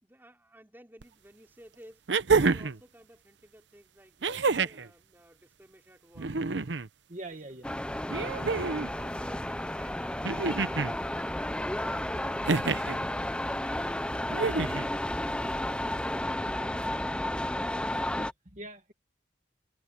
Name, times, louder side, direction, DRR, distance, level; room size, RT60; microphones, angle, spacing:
voice 1, 0.0-2.0 2.3-6.4 7.2-13.2, equal, 10° right, 3.4 m, -55 dB
sound 1, 1.0-1.1 2.1-2.8 4.2-4.9 6.1-6.9 8.1-8.9 10.2-10.9 12.4-13.0 14.3-14.9 16.2-16.3, right 4 dB, 90° right, 0.8 m, -28 dB
voice 2, 7.1-7.7 9.0-9.1 18.1-18.9, right 2 dB, 45° right, 2.0 m, -43 dB
sound 2, 7.6-18.3, left 1 dB, 5° left, 0.6 m, -32 dB
head